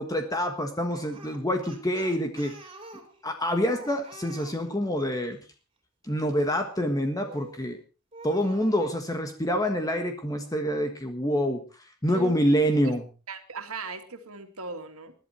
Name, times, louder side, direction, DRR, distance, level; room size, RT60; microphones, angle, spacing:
voice 1, 0.0-2.5 3.2-5.4 6.0-7.8 8.2-13.0, equal, 15° left, 5 dB, 1.5 m, -27 dB
Speech, 0.9-5.2 7.2-7.6 8.1-9.0, right 2 dB, 25° right, 3.8 m, -47 dB
voice 2, 13.3-15.1, right 4 dB, 70° right, 6 dB, 2.6 m, -38 dB
21.0 x 11.5 x 4.4 m, 0.34 s
head